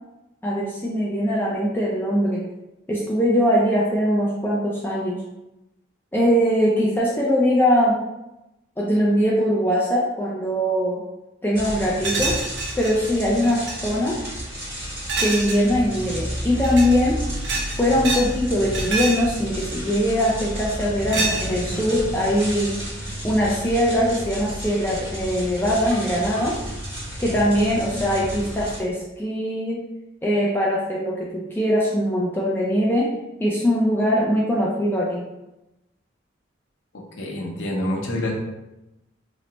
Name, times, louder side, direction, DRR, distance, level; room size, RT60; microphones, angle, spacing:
voice 1, 0.4-2.4 2.9-5.2 6.1-8.0 8.8-11.0 11.4-12.4 12.8-14.2 15.2-17.2 17.8-22.7 23.2-26.6 27.2-29.8 30.2-33.1 33.4-35.2, equal, 10° left, -5 dB, 0.3 m, -21 dB
sound 1, 11.5-28.8, equal, 10° right, 1.0 m, -32 dB
sound 2, 12.0-12.9 13.4-13.7 15.1-15.7 16.5-17.0 17.4-18.3 18.6-19.3 20.2-20.6 21.1-21.8, right 3 dB, 60° right, 0.7 m, -27 dB
voice 2, 37.2-38.3, left 1 dB, 75° left, -1 dB, 0.7 m, -26 dB
3.2 x 2.0 x 3.8 m, 0.95 s
head